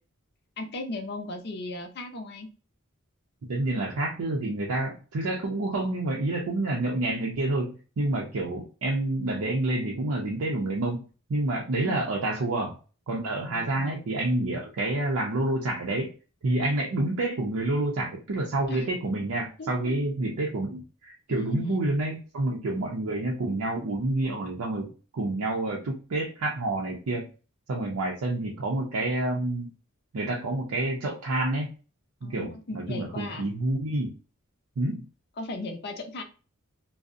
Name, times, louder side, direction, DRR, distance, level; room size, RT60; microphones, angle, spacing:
voice 1, 0.6-2.5 11.8-12.1 13.5-14.0 18.7-18.9 19.6-19.7 21.3-21.9 32.2-33.5 35.4-36.2, left 2 dB, 50° left, 5 dB, 0.5 m, -37 dB
voice 2, 3.5-11.0 11.3-12.7 13.1-16.1 16.4-27.3 27.7-29.7 30.1-31.7 32.2-34.1 34.8-35.1, right 2 dB, 85° right, -2 dB, 0.5 m, -28 dB
2.6 x 2.0 x 2.4 m, 0.35 s
head